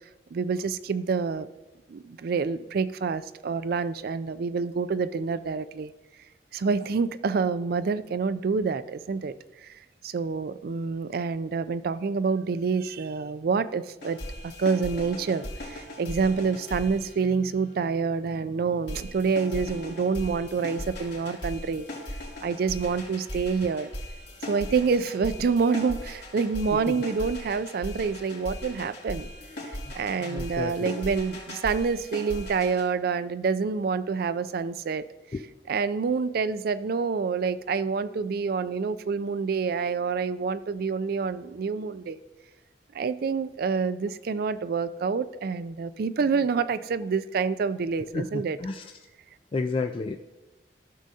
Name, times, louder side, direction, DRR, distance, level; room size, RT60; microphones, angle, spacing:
voice 1, 0.3-1.5 1.9-5.9 6.5-9.3 9.6-9.7 10.0-21.9 22.4-23.9 24.4-29.3 29.7-35.1 35.7-42.2 42.9-48.6, right 5 dB, 60° right, 14 dB, 0.4 m, -27 dB
sound 1, 14.0-17.7 18.9-32.9, left 1 dB, 80° left, 2.4 m, -39 dB
voice 2, 30.2-30.9 35.3-35.4 48.1-48.8 49.5-50.2, left 3 dB, 30° left, 5 dB, 0.3 m, -31 dB
14.5 x 6.3 x 2.8 m, 1.1 s
head